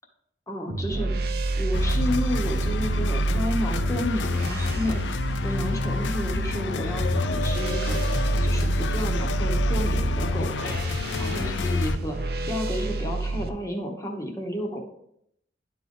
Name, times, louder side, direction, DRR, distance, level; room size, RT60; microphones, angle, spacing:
voice 1, 0.5-1.1 1.6-5.0 5.4-10.8 11.2-12.2 12.4-14.8, equal, 15° left, 1 dB, 1.1 m, -31 dB
sound 1, 0.7-13.5, right 2 dB, 55° right, 0.6 m, -28 dB
sound 2, 1.7-12.0, left 4 dB, 85° left, 0.5 m, -29 dB
11.0 x 3.9 x 3.8 m, 0.74 s
head